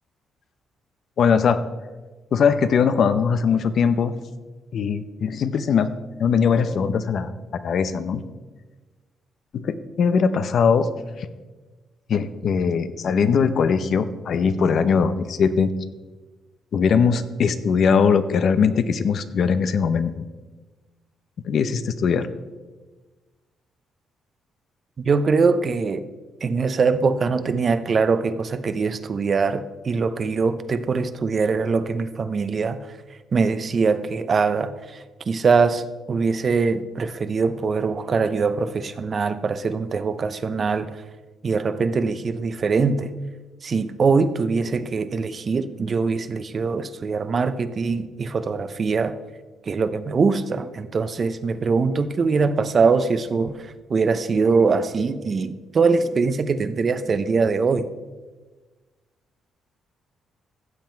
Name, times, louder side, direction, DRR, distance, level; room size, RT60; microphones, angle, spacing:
voice 1, 1.2-1.7 2.3-4.1 4.7-5.9 6.2-8.2 9.5-10.9 11.2-11.3 12.1-15.7 16.7-20.2 21.4-22.3, left 6 dB, 60° left, 12 dB, 0.7 m, -20 dB
voice 2, 25.0-26.1 26.4-32.9 33.3-41.0 41.4-43.2 43.6-49.2 49.6-57.9, right 4 dB, 45° right, 12 dB, 0.7 m, -22 dB
14.5 x 7.5 x 4.5 m, 1.3 s
cardioid pair, 90°, 0 cm